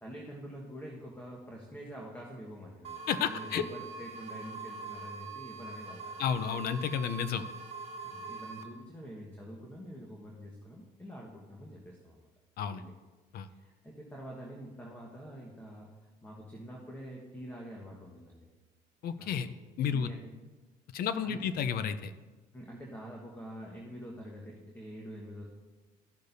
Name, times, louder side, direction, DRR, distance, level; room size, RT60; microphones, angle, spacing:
voice 1, 0.0-6.2 8.0-12.3 12.7-12.9 13.5-15.9 16.2-18.5 19.2-19.6 19.9-20.3 21.2-21.7 22.5-25.4, equal, 10° left, -2 dB, 1.4 m, -46 dB
sound 1, 2.8-8.6, right 4 dB, 40° right, 0.9 m, -43 dB
voice 2, 3.1-3.7 6.2-7.4 12.6-12.8 13.3-13.5 19.0-19.5 19.8-20.1 20.9-22.1, left 7 dB, 65° left, 12 dB, 0.6 m, -31 dB
14.5 x 6.5 x 2.7 m, 1.2 s
cardioid pair, 110°, 17 cm